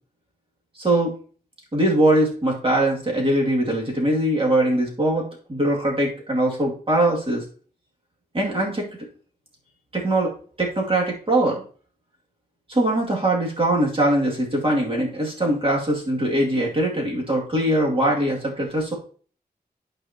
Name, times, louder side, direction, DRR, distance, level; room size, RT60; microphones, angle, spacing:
voice 1, 0.8-1.1 1.7-7.4 8.3-8.9 9.9-11.6 12.7-18.9, right 1 dB, 35° right, -2 dB, 2.5 m, -22 dB
12.0 x 4.8 x 2.9 m, 0.43 s
wide cardioid pair, 110°, 17 cm